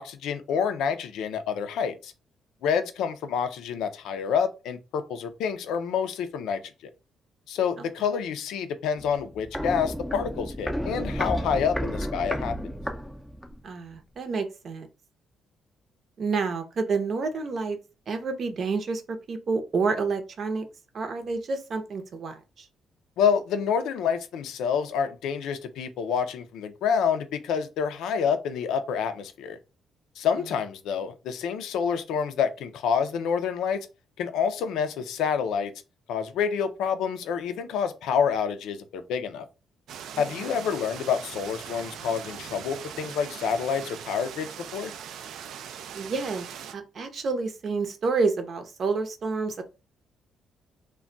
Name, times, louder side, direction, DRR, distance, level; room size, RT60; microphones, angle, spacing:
voice 1, 0.0-2.1 2.6-6.9 7.5-12.5 23.2-29.6 30.2-33.8 34.2-35.7 36.1-39.5 40.2-44.9, left 7 dB, 85° left, 0.4 m, -28 dB
Walk footsteps, 9.0-13.7 13.9-14.0, equal, ahead, 0.5 m, -32 dB
voice 2, 13.6-14.9 16.2-17.8 18.1-20.7 20.9-22.7 40.1-40.5 45.9-49.6, right 4 dB, 55° right, 0.7 m, -29 dB
sound 1, 39.9-46.7, right 8 dB, 75° right, 0.3 m, -40 dB
2.3 x 2.2 x 3.8 m
cardioid pair, 90°, 0 cm